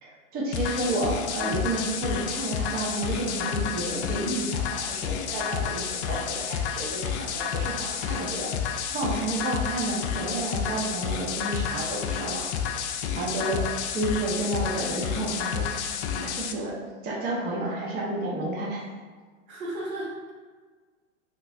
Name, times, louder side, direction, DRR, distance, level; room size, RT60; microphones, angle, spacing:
voice 1, 0.0-8.5 8.9-12.5 12.9-13.6 13.9-16.8 17.0-18.8, right 2 dB, 25° right, -4 dB, 0.7 m, -31 dB
sound 1, 0.5-16.5, left 7 dB, 55° left, 0.4 m, -30 dB
voice 2, 19.5-20.3, right 1 dB, 75° right, -4 dB, 1.3 m, -34 dB
3.1 x 2.6 x 3.3 m, 1.4 s
hypercardioid pair, 115°, 40 cm